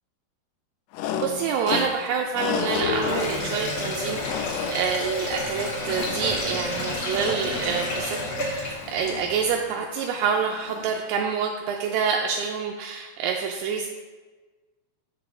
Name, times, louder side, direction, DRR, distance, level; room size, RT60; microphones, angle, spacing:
sound 1, 0.9-11.2, left 8 dB, 85° left, 2.7 m, -35 dB
voice 1, 1.2-13.9, right 6 dB, 85° right, 1 dB, 2.5 m, -27 dB
Sink (filling or washing), 2.6-9.4, left 1 dB, 50° left, 2.2 m, -30 dB
6.9 x 6.9 x 3.7 m, 1.3 s
omnidirectional pair, 4.8 m